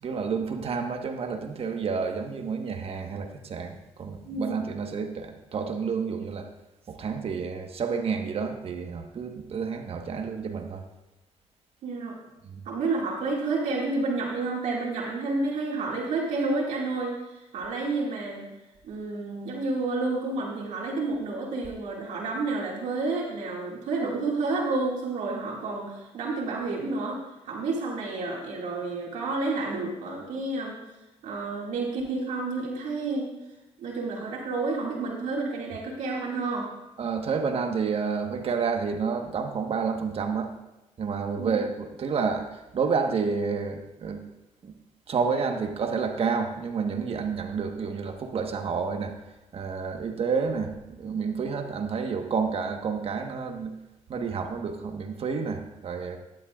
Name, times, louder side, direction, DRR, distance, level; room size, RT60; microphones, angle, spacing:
voice 1, 0.0-6.5 6.9-10.8 12.4-12.6 37.0-40.5 41.0-44.2 44.6-44.7 45.1-49.2 49.5-53.7 54.1-56.2, right 5 dB, 55° right, 5 dB, 1.2 m, -30 dB
voice 2, 4.2-4.6 11.8-12.2 12.7-17.2 17.5-18.5 18.8-27.2 27.5-30.8 31.2-33.3 33.8-36.7 41.4-41.5, right 3 dB, 80° right, -3 dB, 2.1 m, -30 dB
12.5 x 10.5 x 2.4 m, 1.0 s
cardioid pair, 85°, 12 cm